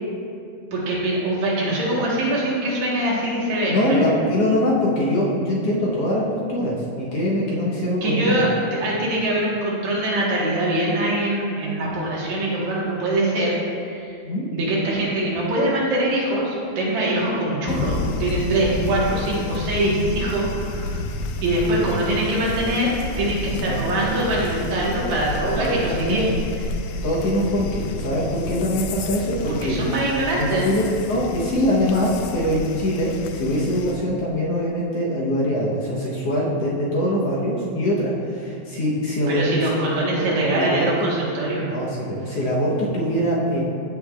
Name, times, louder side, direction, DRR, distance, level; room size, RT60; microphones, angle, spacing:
voice 1, 0.7-4.1 8.0-13.6 13.9-14.2 14.5-21.0 21.4-26.3 29.5-30.7 39.3-41.7, right 1 dB, 75° right, -5 dB, 2.7 m, -23 dB
voice 2, 3.7-6.2 6.5-8.5 14.2-14.5 21.8-22.0 23.7-23.8 25.5-26.2 27.0-29.8 30.4-39.7 40.1-41.1 41.7-43.8, equal, 65° left, -5 dB, 1.9 m, -23 dB
sound 1, 17.7-33.9, left 3 dB, 85° left, 2.0 m, -30 dB
14.5 x 5.3 x 2.3 m, 2.4 s
omnidirectional pair, 3.3 m